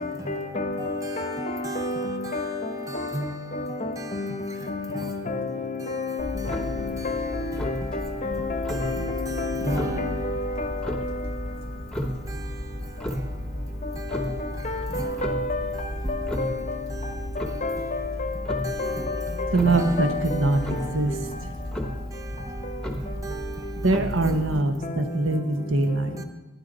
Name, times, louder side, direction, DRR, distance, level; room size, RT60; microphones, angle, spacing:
voice 1, 0.3-1.4 1.8-1.9 2.3-2.5 3.0-3.1 3.8-4.3 4.7-5.5 5.9-6.2 6.5-10.3 10.6-10.7 14.1-14.3 14.6-15.7 16.4-16.5 17.6-17.8 18.5-18.6 20.0-20.2, left 3 dB, 35° left, 0.8 m, -30 dB
voice 2, 0.8-2.5 2.9-4.3 4.9-5.1 5.8-5.9 7.0-7.9 8.4-10.3 12.0-12.5 13.1-13.3 14.0-14.5 14.9-15.3 16.0-16.5 16.9-17.2 17.5-17.7 18.6-19.2 19.6-21.3 22.5-23.9 24.2-24.4 26.2-26.3, right 2 dB, 15° right, 0.5 m, -36 dB
Clock, 6.2-24.6, left 1 dB, 5° left, 0.9 m, -33 dB
voice 3, 19.5-21.5 23.8-26.2, right 2 dB, 70° right, 1.0 m, -23 dB
12.0 x 10.5 x 4.0 m
head